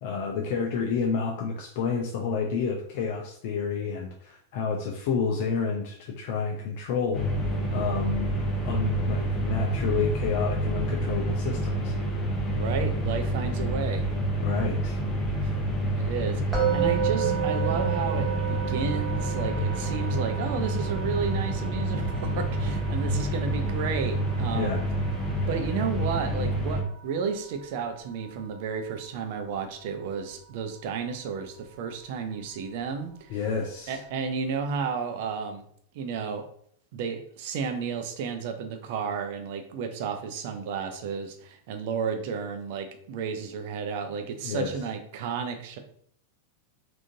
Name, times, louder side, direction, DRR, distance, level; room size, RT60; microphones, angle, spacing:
voice 1, 0.0-7.2 7.7-8.3 8.6-11.9 14.4-15.0 24.5-24.8 33.3-34.0 44.4-44.7, left 5 dB, 50° left, 0 dB, 0.4 m, -29 dB
sound 1, 7.1-26.8, right 1 dB, 20° left, 0.9 m, -28 dB
voice 2, 12.6-14.1 15.4-15.5 16.0-24.8 25.5-33.4 33.9-35.7 35.9-36.4 36.9-45.8, right 6 dB, 50° right, 6 dB, 0.5 m, -32 dB
Musical instrument, 16.5-27.6, right 8 dB, 5° right, 1.0 m, -33 dB
3.6 x 2.5 x 2.6 m, 0.63 s
figure-of-eight pair, 90°, 0 cm